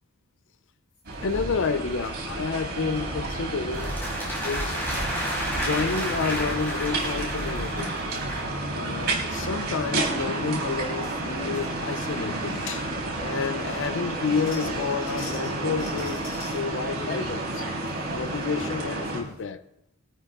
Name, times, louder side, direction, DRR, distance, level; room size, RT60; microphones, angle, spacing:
sound 1, 0.9-1.3 1.9-2.1 3.0-3.2 3.5-3.6 3.8-4.0 4.7-5.2 5.6-6.0 7.8-7.9 8.1-8.4 8.8-8.9 9.6-9.8 10.2-10.3 10.7-11.2 11.5-12.2 12.5-12.6 13.2-13.3 13.6-16.6 17.1-18.0 18.3-18.4 18.9-19.0 19.3-19.4, left 3 dB, 40° left, 3.0 m, -47 dB
sound 2, 1.0-19.2, right 2 dB, 50° right, 4.3 m, -30 dB
voice 1, 1.2-3.9 4.4-4.8 5.5-7.9 8.7-12.9 13.2-16.2 16.5-17.7 18.1-19.6, left 5 dB, 55° left, 0.6 m, -30 dB
sound 3, 3.7-8.5, equal, 10° left, 5.6 m, -32 dB
21.0 x 13.0 x 3.6 m
head